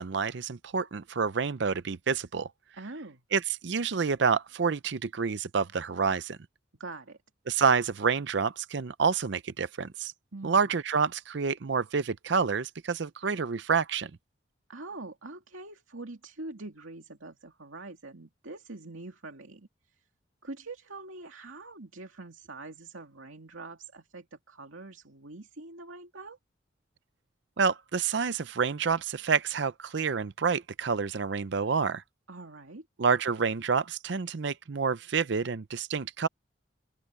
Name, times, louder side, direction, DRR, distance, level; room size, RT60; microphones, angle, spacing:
voice 1, 0.0-2.5 3.3-6.4 7.5-10.1 10.4-14.1 27.6-32.0 33.0-36.3, right 5 dB, 60° right, 0.6 m, -28 dB
voice 2, 2.7-3.2 6.8-7.2 10.3-10.7 14.7-19.7 20.4-26.4 32.3-32.9, right 2 dB, 85° right, 2.5 m, -44 dB
head